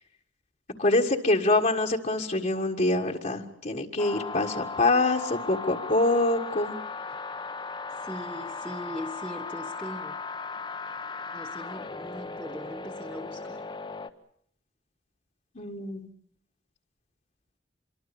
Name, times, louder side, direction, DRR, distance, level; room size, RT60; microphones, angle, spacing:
voice 1, 0.8-6.8 15.6-16.1, left 2 dB, 40° left, 1 dB, 1.7 m, -25 dB
sound 1, 4.0-14.1, left 4 dB, 25° left, 1.0 m, -37 dB
voice 2, 7.9-10.2 11.3-13.6, equal, 5° right, 1 dB, 1.3 m, -40 dB
26.0 x 23.5 x 7.0 m, 0.64 s
head